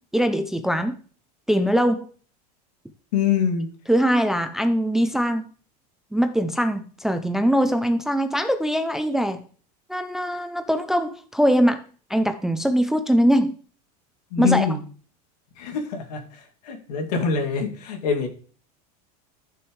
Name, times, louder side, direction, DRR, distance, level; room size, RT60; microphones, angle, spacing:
voice 1, 0.1-1.0 1.5-2.1 3.9-5.5 6.1-9.4 9.9-11.8 12.1-13.5 14.4-14.7, equal, ahead, 8 dB, 0.4 m, -22 dB
voice 2, 3.1-3.7 14.3-14.8 15.6-18.3, left 6 dB, 85° left, 4 dB, 2.5 m, -24 dB
14.0 x 6.2 x 3.1 m, 0.41 s
supercardioid pair, 170°, 20 cm